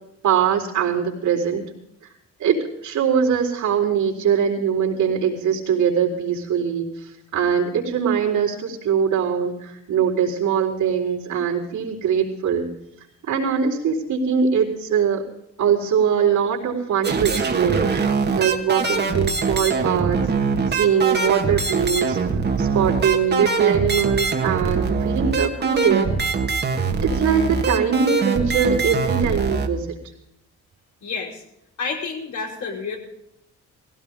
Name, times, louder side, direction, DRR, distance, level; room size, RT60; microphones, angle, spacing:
voice 1, 0.2-1.7 2.4-12.7 13.2-15.2 15.6-17.9 18.3-20.3 20.7-22.2 22.6-26.1 27.0-29.9, right 7 dB, 80° right, -2 dB, 4.3 m, -22 dB
sound 1, 17.0-29.7, right 4 dB, 35° right, 1.8 m, -23 dB
voice 2, 31.0-31.4 31.8-33.0, left 4 dB, 70° left, -1 dB, 5.1 m, -29 dB
19.5 x 16.5 x 3.7 m, 0.79 s
cardioid pair, 130°, 29 cm